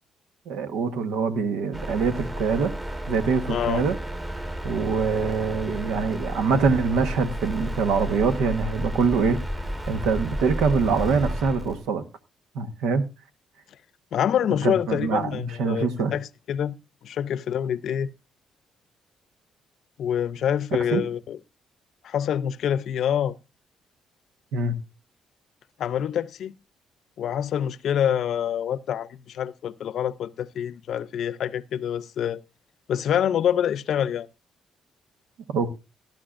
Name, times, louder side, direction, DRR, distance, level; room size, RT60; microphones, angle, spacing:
voice 1, 0.5-2.7 3.1-4.0 4.6-9.4 9.9-12.0 12.5-13.0 14.6-16.1 20.9-21.0 24.5-24.8 35.5-35.7, right 5 dB, 90° right, 1.2 m, -24 dB
sound 1, 1.7-11.9, equal, 20° right, 1.5 m, -32 dB
voice 2, 3.5-3.8 14.1-16.7 17.0-18.1 20.0-21.4 22.0-23.3 25.8-26.5 27.2-32.4 32.9-34.3, left 9 dB, 70° left, 0.6 m, -26 dB
17.0 x 12.0 x 2.5 m
cardioid pair, 90°, 0 cm